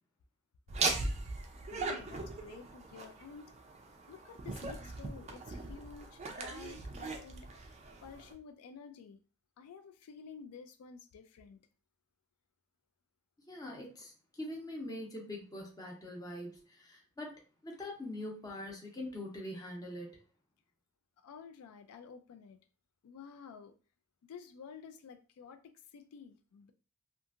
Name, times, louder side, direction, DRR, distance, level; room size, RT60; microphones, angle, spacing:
Laughter, 0.7-8.3, right 3 dB, 30° right, 0.3 m, -39 dB
voice 1, 1.7-3.5 4.1-9.2 9.6-11.6 21.2-22.6 23.0-23.7 24.3-26.7, left 6 dB, 85° left, 8 dB, 0.3 m, -51 dB
voice 2, 13.5-20.2, left 1 dB, 15° left, -1 dB, 0.7 m, -43 dB
2.7 x 2.5 x 2.4 m, 0.35 s
head